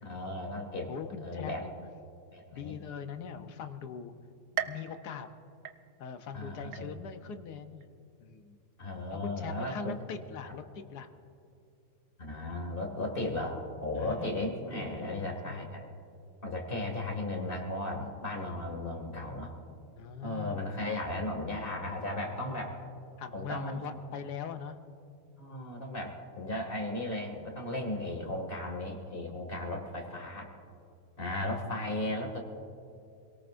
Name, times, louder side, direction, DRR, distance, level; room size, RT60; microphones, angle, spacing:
voice 1, 0.0-0.9 1.2-1.6 2.3-2.7 4.5-4.7 6.3-6.9 8.8-10.0 10.4-10.5 12.2-15.9 16.4-19.5 20.2-22.8 23.3-23.8 25.4-30.5 31.2-32.4, left 1 dB, 30° left, 1 dB, 2.3 m, -36 dB
voice 2, 0.9-1.8 2.5-4.1 4.7-5.3 6.0-7.9 8.2-8.6 9.1-11.1 13.9-15.2 15.4-15.7 20.0-20.6 22.1-22.7 23.2-24.7, left 7 dB, 70° left, 8 dB, 1.4 m, -42 dB
sound 1, 4.6-6.3 6.7-7.3 7.8-7.9 8.9-9.0, right 10 dB, 75° right, 1.1 m, -40 dB
27.5 x 18.0 x 2.6 m, 2.5 s
omnidirectional pair, 1.8 m